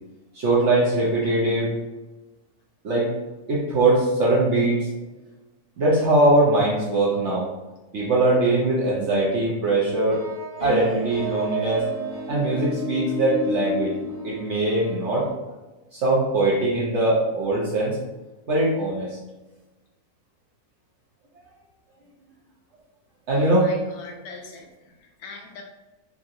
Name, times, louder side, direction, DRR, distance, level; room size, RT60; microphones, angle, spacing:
voice 1, 0.3-1.7 2.8-3.1 3.5-4.9 5.8-7.5 7.9-10.2 10.6-11.9 12.3-14.0 14.2-15.3 15.9-18.0 18.5-19.2 23.3-23.7, right 2 dB, 60° right, -5 dB, 0.8 m, -21 dB
sound 1, 10.1-15.3, right 1 dB, 20° right, 0.9 m, -31 dB
voice 2, 23.4-25.6, left 3 dB, 75° left, 2 dB, 1.1 m, -42 dB
3.7 x 2.8 x 2.4 m, 1.1 s
omnidirectional pair, 1.7 m